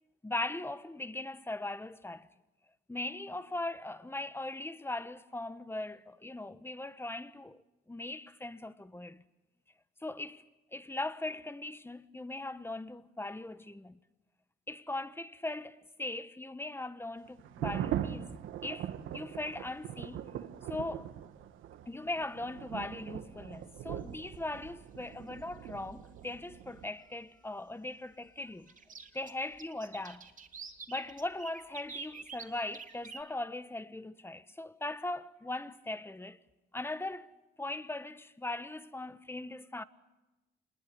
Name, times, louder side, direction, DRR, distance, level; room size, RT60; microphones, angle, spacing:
voice 1, 0.2-2.3 2.9-7.6 7.9-9.2 10.0-10.4 10.7-14.0 14.7-18.3 18.6-20.2 20.7-21.1 21.9-28.7 29.1-30.3 30.9-36.4 36.7-37.3 37.6-39.8, left 2 dB, 10° left, 1.2 m, -39 dB
Thunder Clap, 17.4-26.9, right 10 dB, 85° right, 1.5 m, -41 dB
sound 1, 23.9-24.2 25.8-25.9 26.3-26.4 28.7-33.2, right 6 dB, 40° right, 2.8 m, -47 dB
26.5 x 21.0 x 9.2 m
cardioid pair, 90°, 20 cm